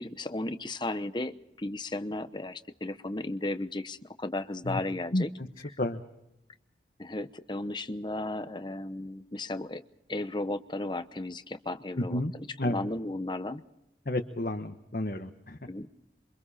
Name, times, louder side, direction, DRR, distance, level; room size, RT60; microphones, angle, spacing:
voice 1, 0.0-5.3 7.0-9.8 10.1-12.2 12.6-13.6 15.7-16.0, left 2 dB, 25° left, 11 dB, 0.9 m, -35 dB
voice 2, 12.0-12.3 12.6-12.8 14.0-15.6, left 1 dB, 50° left, 5 dB, 1.2 m, -30 dB
28.0 x 24.5 x 4.3 m, 0.86 s
head